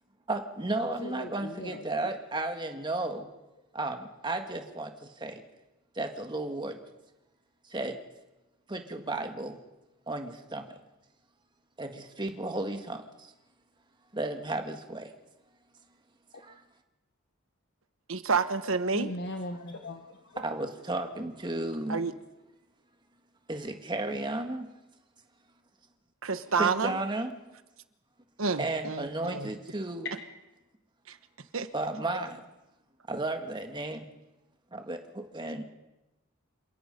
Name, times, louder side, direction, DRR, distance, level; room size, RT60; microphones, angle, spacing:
voice 1, 0.3-3.3 3.7-5.4 5.9-6.8 7.7-8.0 8.7-9.6 10.1-10.7 11.8-13.3 14.1-15.1 16.4-16.6 20.3-22.1 23.5-24.7 26.6-27.4 28.6-30.1 31.7-32.4 33.1-34.1 34.7-35.6, right 2 dB, 20° right, 5 dB, 1.8 m, -34 dB
voice 2, 0.8-2.1 18.9-20.4, left 1 dB, 55° left, 4 dB, 1.3 m, -39 dB
voice 3, 18.1-19.1 21.9-22.1 26.2-27.0 28.4-29.5 31.1-31.2 31.5-31.7, right 4 dB, 75° right, 11 dB, 1.2 m, -29 dB
28.0 x 17.5 x 5.4 m, 1.0 s
head